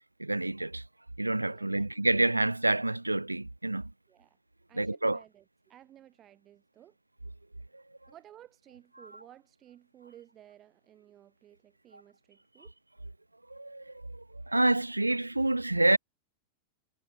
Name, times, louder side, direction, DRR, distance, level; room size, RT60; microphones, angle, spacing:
voice 1, 0.2-0.8 1.2-3.9 4.7-5.2 7.7-7.8 13.5-13.9 14.5-16.0, right 2 dB, 85° right, 0.5 m, -27 dB
voice 2, 1.4-1.9 4.1-4.4 4.7-7.0 8.1-12.7, right 12 dB, 30° right, 5.6 m, -56 dB
figure-of-eight pair, 90°, 0 cm